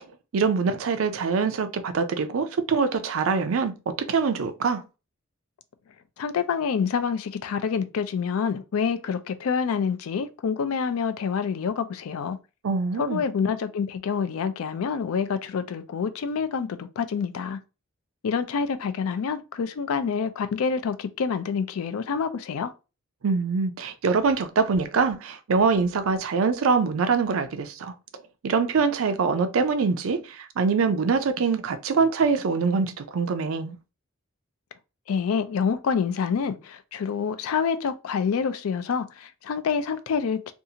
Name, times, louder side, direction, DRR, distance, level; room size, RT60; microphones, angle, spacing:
voice 1, 0.3-4.8 12.6-13.2 23.2-27.9 28.4-33.8, right 5 dB, 75° right, 0.4 m, -24 dB
voice 2, 6.2-12.4 13.0-17.6 18.2-22.7 35.1-40.5, left 6 dB, 80° left, 0.4 m, -27 dB
2.6 x 2.4 x 2.7 m
head